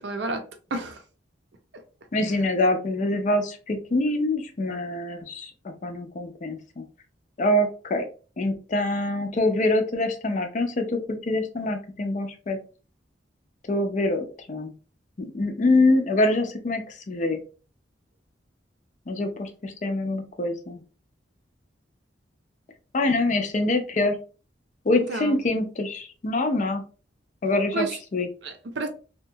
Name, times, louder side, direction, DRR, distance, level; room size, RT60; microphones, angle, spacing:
voice 1, 0.0-0.4 0.7-1.0 24.9-25.4 27.7-27.9 28.4-28.9, right 3 dB, 65° right, 0.6 m, -30 dB
voice 2, 2.1-5.5 5.8-6.8 7.4-8.1 8.4-12.6 13.7-14.7 15.2-17.4 19.1-20.8 22.9-24.2 24.9-26.8 27.4-28.3, left 2 dB, 40° left, 0.4 m, -25 dB
2.8 x 2.3 x 2.6 m
head